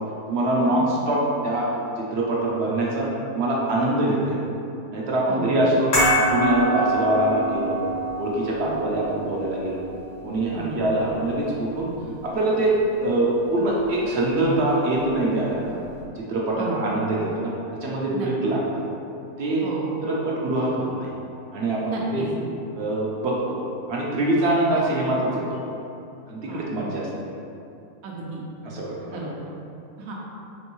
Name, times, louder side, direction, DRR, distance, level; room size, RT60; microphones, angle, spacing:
voice 1, 0.3-1.7 2.0-4.4 4.9-5.9 6.3-7.9 8.2-9.8 10.2-11.9 12.2-12.7 13.0-15.8 16.2-17.5 17.8-18.6 19.4-19.7 20.0-21.1 21.5-22.2 22.7-25.6 26.3-27.1 28.6-29.3, right 1 dB, 60° right, -4 dB, 0.7 m, -24 dB
sound 1, 5.9-12.3 12.6-12.8, right 1 dB, 90° left, 2.2 m, -26 dB
voice 2, 19.6-19.9 21.8-22.3 26.5-26.6 28.0-28.4 29.1-29.3 30.0-30.1, right 3 dB, 80° right, -3 dB, 1.1 m, -33 dB
4.4 x 3.1 x 3.0 m, 2.7 s
omnidirectional pair, 1.5 m